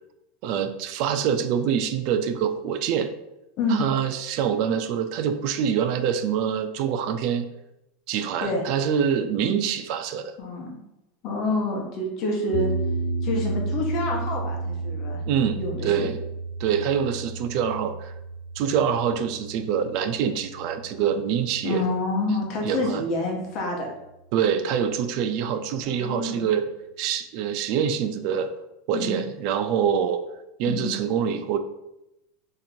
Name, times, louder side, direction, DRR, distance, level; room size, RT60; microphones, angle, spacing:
voice 1, 0.4-3.1 3.7-7.5 8.1-10.3 15.3-16.2 16.6-18.1 18.6-21.9 22.6-23.0 24.3-26.7 27.0-28.5 28.9-30.2 30.6-31.6, right 8 dB, 50° right, 8 dB, 0.3 m, -25 dB
voice 2, 10.4-10.8 11.2-12.7 13.2-15.2 15.5-16.1 21.6-23.9 25.8-26.5 28.9-29.2 30.7-30.9, left 2 dB, 40° left, 0 dB, 0.9 m, -27 dB
sound 1, 12.5-22.8, right 2 dB, 80° left, 0.4 m, -32 dB
2.9 x 2.6 x 4.2 m, 0.91 s
supercardioid pair, 145°, 0 cm